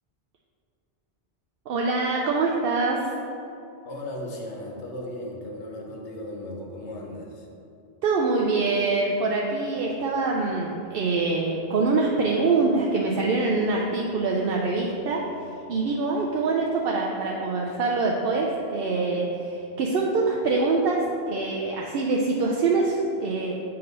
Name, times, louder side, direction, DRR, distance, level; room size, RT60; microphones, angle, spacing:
voice 1, 1.7-3.1 8.0-23.5, right 3 dB, 65° right, -1 dB, 0.7 m, -24 dB
voice 2, 3.8-7.5, left 1 dB, 80° left, 0 dB, 1.2 m, -36 dB
7.8 x 2.9 x 5.2 m, 2.7 s
omnidirectional pair, 1.2 m